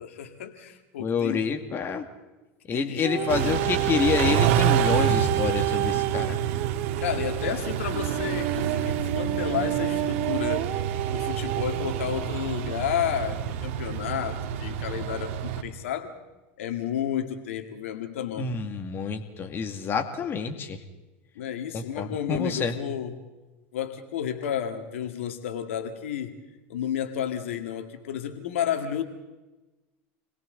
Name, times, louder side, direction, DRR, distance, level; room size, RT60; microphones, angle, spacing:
voice 1, 0.0-1.5 2.7-3.7 7.0-10.7 11.1-16.1 16.6-18.5 21.4-23.3 23.7-26.4 26.7-29.0, left 9 dB, 90° left, 6 dB, 2.1 m, -31 dB
voice 2, 1.0-2.1 2.7-6.4 18.4-20.8 21.7-22.7, left 5 dB, 35° left, 6 dB, 2.2 m, -28 dB
sound 1, 3.0-12.1 12.8-12.9, right 17 dB, 55° right, 0.7 m, -29 dB
Car / Idling / Accelerating revving vroom, 3.3-15.6, right 8 dB, 70° right, 2.2 m, -28 dB
29.5 x 22.0 x 4.0 m, 1.1 s
supercardioid pair, 110°, 7 cm